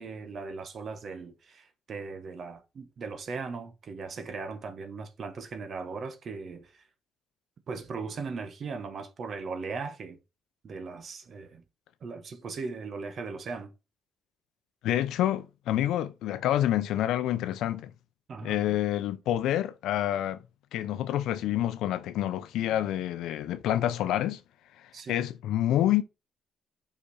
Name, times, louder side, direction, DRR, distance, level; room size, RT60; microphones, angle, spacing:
voice 1, 0.0-6.8 7.7-10.2 10.6-11.6 12.0-13.7 18.3-18.8 24.9-25.3, right 4 dB, 55° right, 1.0 m, -38 dB
voice 2, 14.8-17.9 18.4-20.4 20.7-24.4 25.1-26.0, left 12 dB, 85° left, 0.6 m, -28 dB
5.5 x 5.1 x 4.1 m
cardioid pair, 90°, 0 cm